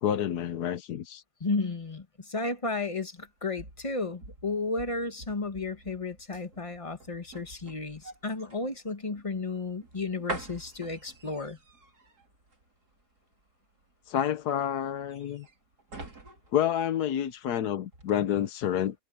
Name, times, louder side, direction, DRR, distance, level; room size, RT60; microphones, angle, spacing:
voice 1, 0.0-1.2 14.1-15.5 16.5-19.0, left 10 dB, 85° left, 1.4 m, -29 dB
voice 2, 1.4-11.6, left 3 dB, 20° left, 1.4 m, -33 dB
sound 1, 3.2-17.5 17.9-18.1, right 2 dB, 80° right, 4.2 m, -46 dB
omnidirectional pair, 1.6 m